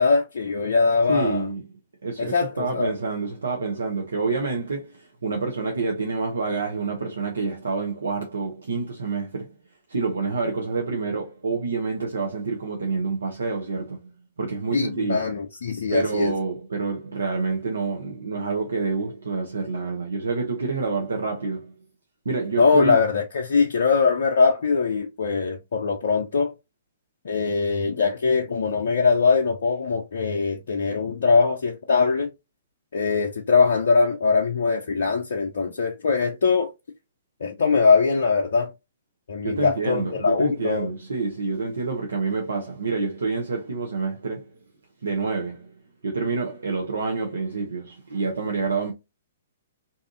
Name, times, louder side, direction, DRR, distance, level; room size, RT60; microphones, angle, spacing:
voice 1, 0.0-1.5 2.2-2.9 14.7-16.3 22.6-26.5 27.2-32.3 32.9-36.7 37.4-38.7 39.3-40.9, left 4 dB, 65° left, 0.5 m, -22 dB
voice 2, 1.1-1.6 2.0-9.5 9.9-14.1 14.4-15.2 15.9-21.7 22.2-23.0 39.4-44.5 45.0-45.7 46.0-48.9, right 4 dB, 70° right, 0.6 m, -27 dB
2.7 x 2.4 x 2.4 m
figure-of-eight pair, 120°, 0 cm